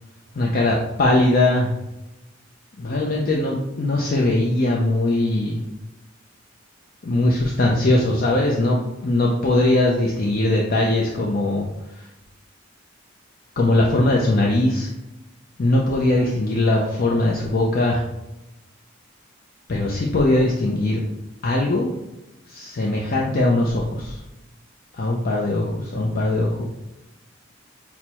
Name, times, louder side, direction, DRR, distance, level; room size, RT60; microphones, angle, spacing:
voice 1, 0.3-1.7 2.8-5.6 7.0-12.1 13.6-14.9 15.6-18.0 19.7-21.0 21.4-21.9 22.5-24.2 24.9-26.6, left 2 dB, 45° left, -1 dB, 0.5 m, -20 dB
5.5 x 2.1 x 4.5 m, 0.96 s
head